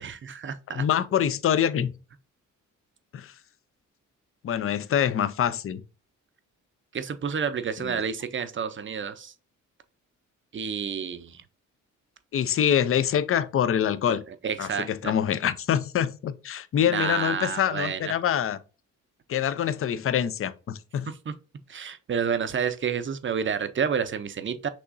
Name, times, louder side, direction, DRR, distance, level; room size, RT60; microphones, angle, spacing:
voice 1, 0.0-0.8 6.9-9.3 10.5-11.4 14.1-15.1 16.9-18.1 21.1-21.3 21.7-24.7, right 7 dB, 40° right, 0.6 m, -30 dB
voice 2, 0.7-1.9 3.1-3.3 4.4-5.8 7.8-8.0 12.3-14.2 14.6-18.6 19.3-21.1, left 9 dB, 45° left, 0.5 m, -25 dB
6.1 x 2.9 x 2.5 m
cardioid pair, 75°, 32 cm